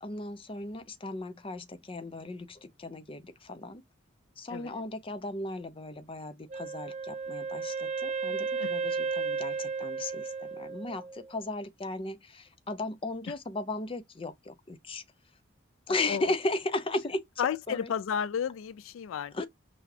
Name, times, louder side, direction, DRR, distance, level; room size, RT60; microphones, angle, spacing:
voice 1, 0.0-3.8 4.4-15.0 15.9-17.2 17.7-17.9 19.3-19.5, left 2 dB, 30° left, 0.6 m, -36 dB
voice 2, 4.5-4.8 8.6-8.7 16.1-16.3 17.4-19.5, left 8 dB, 85° left, 0.3 m, -32 dB
Wind instrument woodwind instrument, 6.5-11.4, right 4 dB, 35° right, 0.6 m, -34 dB
5.9 x 2.3 x 2.7 m
head